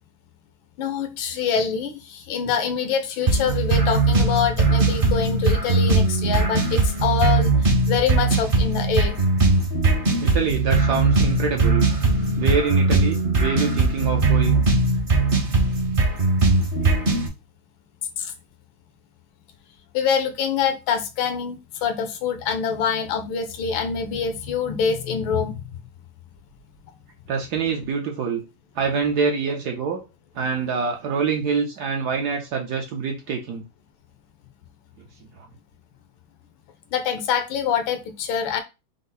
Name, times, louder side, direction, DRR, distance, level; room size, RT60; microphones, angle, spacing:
voice 1, 0.8-9.2 18.2-18.3 19.9-25.6 36.9-38.6, left 6 dB, 75° left, 1.5 m, -25 dB
sound 1, 3.3-17.3, right 3 dB, 40° right, 0.8 m, -20 dB
voice 2, 10.2-11.8 12.4-14.6 16.8-16.9 27.3-28.4 28.8-30.0 30.3-33.6 35.4-35.5, right 5 dB, 70° right, 1.0 m, -25 dB
5.4 x 2.0 x 3.8 m
omnidirectional pair, 2.2 m